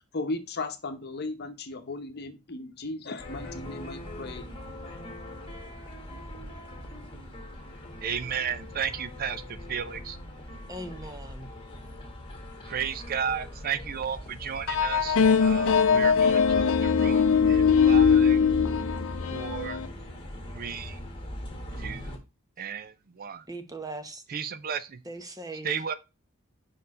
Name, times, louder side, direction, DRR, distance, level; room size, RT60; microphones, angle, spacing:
voice 1, 0.1-4.5, left 2 dB, 50° left, 0.9 m, -36 dB
sound 1, 3.2-22.2, left 1 dB, 25° left, 1.6 m, -39 dB
voice 2, 8.0-10.2 12.7-18.4 19.3-19.8 20.5-21.0 21.8-22.2 22.6-23.4 24.3-25.0 25.6-25.9, right 7 dB, 45° right, 0.4 m, -34 dB
voice 3, 10.7-11.5 23.5-24.2 25.0-25.8, right 2 dB, 15° right, 0.8 m, -39 dB
sound 2, 14.7-19.9, left 6 dB, 65° left, 0.5 m, -21 dB
5.4 x 4.4 x 4.1 m
head